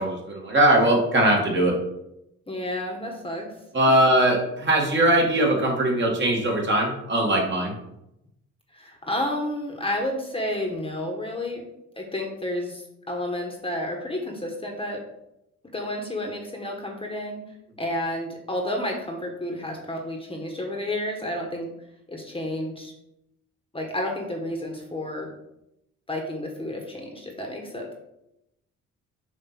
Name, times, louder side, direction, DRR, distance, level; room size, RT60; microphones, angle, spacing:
voice 1, 0.0-1.7 3.7-7.7, right 1 dB, 40° right, -1 dB, 2.2 m, -20 dB
voice 2, 2.5-3.5 3.9-4.0 8.7-11.6 11.9-15.0 15.6-17.4 17.8-21.7 22.1-22.9 23.7-25.3 26.1-27.9, left 1 dB, 20° left, 1 dB, 1.4 m, -31 dB
7.1 x 2.9 x 6.0 m, 0.82 s
cardioid pair, 90°, 30 cm